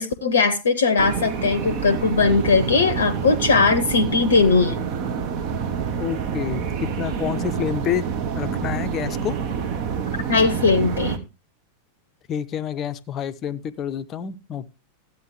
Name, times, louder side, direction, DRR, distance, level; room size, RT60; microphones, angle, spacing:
voice 1, 0.0-4.8 10.3-11.2, left 4 dB, 65° left, 0.7 m, -19 dB
sound 1, 1.0-11.2, right 6 dB, 45° right, 1.1 m, -27 dB
voice 2, 6.0-8.1 8.3-9.4 12.3-14.7, left 9 dB, 30° left, 0.6 m, -28 dB
13.0 x 8.4 x 3.1 m
figure-of-eight pair, 90°, 0 cm